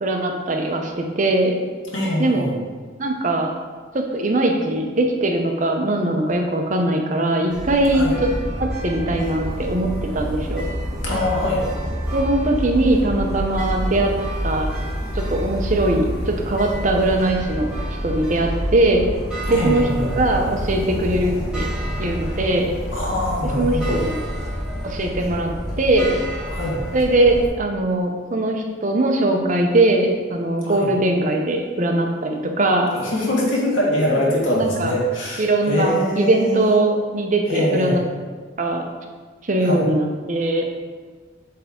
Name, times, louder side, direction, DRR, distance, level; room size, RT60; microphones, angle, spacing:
voice 1, 0.0-1.6 2.2-2.5 3.0-3.5 3.9-8.3 8.6-10.6 12.1-14.1 14.4-14.7 15.1-17.7 18.0-19.0 19.5-21.7 22.0-22.7 23.5-24.2 24.8-25.5 25.8-26.2 26.9-32.9 34.5-34.9 35.4-38.0 38.6-38.9 39.4-40.6, right 2 dB, 40° right, 2 dB, 0.6 m, -21 dB
voice 2, 1.9-2.5 7.9-8.1 11.0-11.7 19.5-20.2 22.9-24.0 26.5-26.8 30.7-30.9 32.9-36.7 37.5-38.0 39.6-39.8, left 1 dB, 80° left, -4 dB, 1.6 m, -23 dB
sound 1, 7.5-27.5, equal, 5° right, 1.5 m, -28 dB
7.8 x 3.4 x 3.7 m, 1.5 s
head